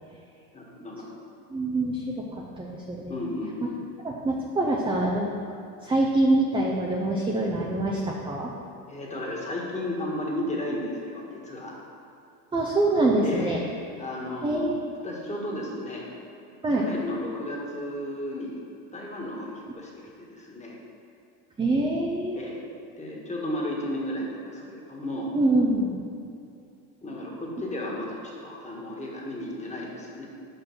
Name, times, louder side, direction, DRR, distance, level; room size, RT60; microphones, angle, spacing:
voice 1, 0.5-1.1 3.1-3.9 8.9-11.7 13.2-13.6 14.0-16.1 16.7-18.6 18.9-19.9 20.2-20.8 22.3-22.6 23.0-25.3 27.0-30.3, left 1 dB, 15° left, -3 dB, 1.5 m, -34 dB
voice 2, 1.5-3.2 4.0-5.3 5.8-8.5 12.5-13.6 14.4-14.9 16.6-16.9 21.6-22.4 25.3-25.9, right 2 dB, 10° right, -2 dB, 0.5 m, -25 dB
5.5 x 5.4 x 6.1 m, 2.6 s
supercardioid pair, 105°, 46 cm